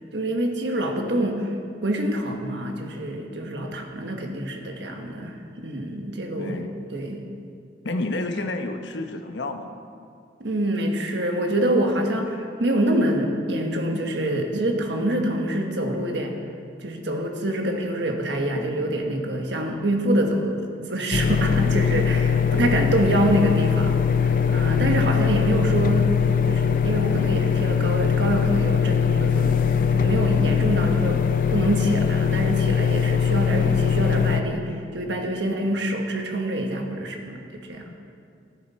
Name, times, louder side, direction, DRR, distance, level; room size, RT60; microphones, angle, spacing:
voice 1, 0.1-1.5 1.8-6.6 6.9-7.2 10.4-16.4 16.8-26.1 26.4-29.6 29.9-31.2 31.5-37.9, right 1 dB, 70° right, 3 dB, 1.4 m, -26 dB
voice 2, 6.4-6.7 7.8-9.7 37.8-37.9, left 2 dB, 70° left, 6 dB, 0.9 m, -31 dB
sound 1, 21.1-34.4, left 7 dB, 45° left, 0.5 m, -21 dB
15.0 x 9.8 x 4.2 m, 2.4 s
head